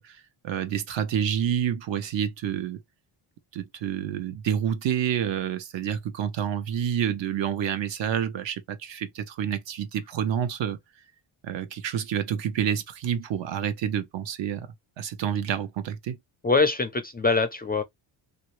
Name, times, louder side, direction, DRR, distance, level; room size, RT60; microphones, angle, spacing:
voice 1, 0.0-2.8 3.5-10.8 11.4-16.2, right 9 dB, 65° right, 0.8 m, -28 dB
voice 2, 16.4-17.8, left 4 dB, 20° left, 0.4 m, -23 dB
3.1 x 2.6 x 3.0 m
cardioid pair, 120°, 48 cm